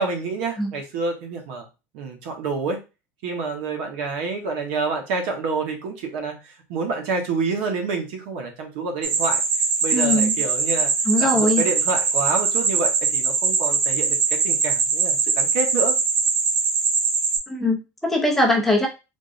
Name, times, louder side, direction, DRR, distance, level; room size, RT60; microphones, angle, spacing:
voice 1, 0.0-1.7 1.9-2.8 3.2-9.4 9.8-10.9 11.2-15.9, right 4 dB, 70° right, 3 dB, 1.2 m, -28 dB
sound 1, 9.0-17.4, right 5 dB, 35° right, 1.1 m, -22 dB
voice 2, 9.9-10.4 11.1-11.7 17.5-18.9, left 1 dB, 5° left, -1 dB, 0.6 m, -21 dB
3.7 x 3.5 x 2.6 m, 0.28 s
cardioid pair, 165°, 7 cm